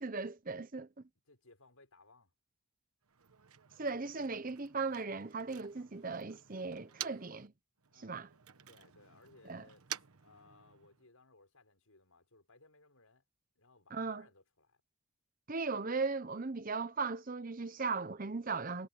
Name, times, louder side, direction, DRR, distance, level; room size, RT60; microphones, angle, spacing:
voice 1, 0.0-0.9 3.8-7.5 8.0-8.3 9.5-9.6 13.9-14.2 15.5-18.9, right 4 dB, 40° right, 0.8 m, -37 dB
voice 2, 1.3-2.3 7.9-8.3 8.7-13.2 13.6-14.8, left 3 dB, 80° left, 5.7 m, -63 dB
Motor vehicle (road), 3.0-7.5 7.8-11.1, right 11 dB, 85° right, 1.2 m, -50 dB
head